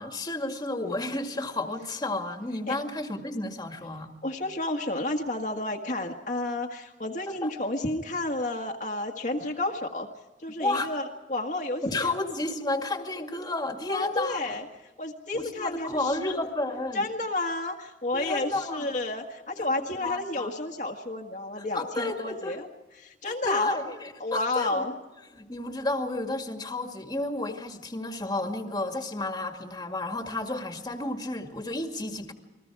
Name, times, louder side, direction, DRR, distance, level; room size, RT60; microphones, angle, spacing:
voice 1, 0.0-4.1 7.4-7.5 10.6-10.9 11.8-14.5 15.3-17.0 18.1-18.9 19.6-20.5 21.7-22.6 23.3-24.9 25.3-32.3, left 2 dB, 25° left, 4 dB, 2.1 m, -32 dB
voice 2, 4.2-10.1 10.4-12.1 13.9-16.4 16.9-24.9, left 2 dB, 45° left, 2 dB, 1.7 m, -31 dB
29.0 x 21.5 x 4.8 m, 1.1 s
head